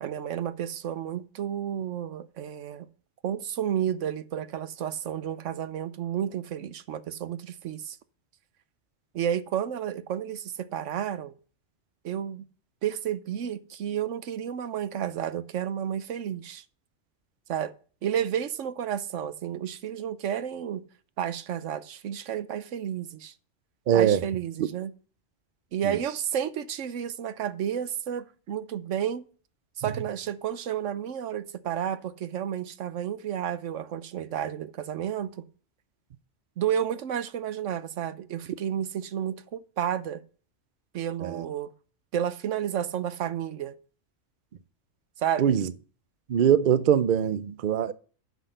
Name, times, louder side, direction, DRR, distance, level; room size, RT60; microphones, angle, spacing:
voice 1, 0.0-2.9 3.2-8.0 9.1-11.3 12.0-12.4 12.8-16.6 17.5-17.7 18.0-20.8 21.2-23.3 23.9-24.9 25.7-29.2 29.8-35.5 36.6-40.2 40.9-41.7 42.1-43.7 45.2-45.6, right 9 dB, 75° right, 1.1 m, -31 dB
voice 2, 23.9-24.2 25.8-26.0 41.2-41.5 45.4-45.7 46.3-47.9, right 9 dB, 55° right, 0.6 m, -22 dB
9.4 x 6.3 x 6.6 m
omnidirectional pair, 1.3 m